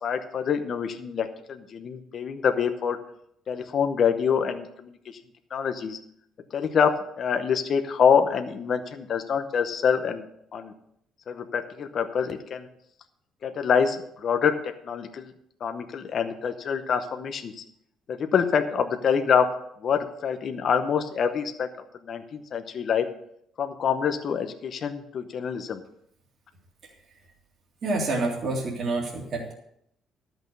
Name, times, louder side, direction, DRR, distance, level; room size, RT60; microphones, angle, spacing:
voice 1, 0.0-3.0 3.5-5.2 5.5-6.0 6.5-10.2 10.5-10.7 11.3-12.7 13.4-14.5 14.8-15.3 15.6-17.6 18.1-19.5 19.8-21.7 22.1-23.0 23.6-25.8, left 7 dB, 40° left, 7 dB, 0.9 m, -26 dB
voice 2, 27.8-29.5, right 2 dB, 40° right, -2 dB, 2.5 m, -28 dB
13.0 x 6.2 x 6.8 m, 0.71 s
cardioid pair, 160°, 0 cm